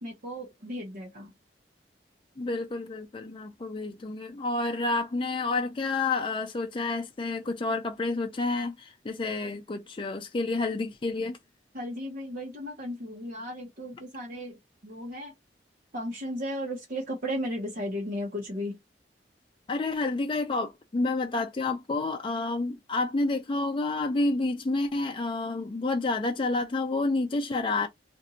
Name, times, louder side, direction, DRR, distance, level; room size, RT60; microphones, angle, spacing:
voice 1, 0.0-1.3 11.7-14.6 14.8-15.3 15.9-18.8, equal, 55° right, 1.1 m, -35 dB
voice 2, 2.4-11.4 19.7-27.9, left 3 dB, 30° left, 0.4 m, -29 dB
2.6 x 2.6 x 4.1 m
head